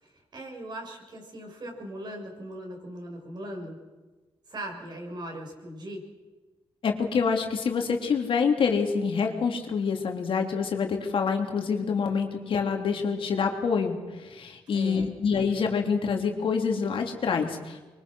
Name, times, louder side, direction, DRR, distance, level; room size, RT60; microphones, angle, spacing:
voice 1, 0.0-3.8 4.5-6.1 14.7-15.1, right 1 dB, 50° right, 1 dB, 6.7 m, -39 dB
voice 2, 6.8-17.8, left 5 dB, 65° left, 3 dB, 3.3 m, -26 dB
25.0 x 23.5 x 6.4 m, 1.3 s
cardioid pair, 95°, 10 cm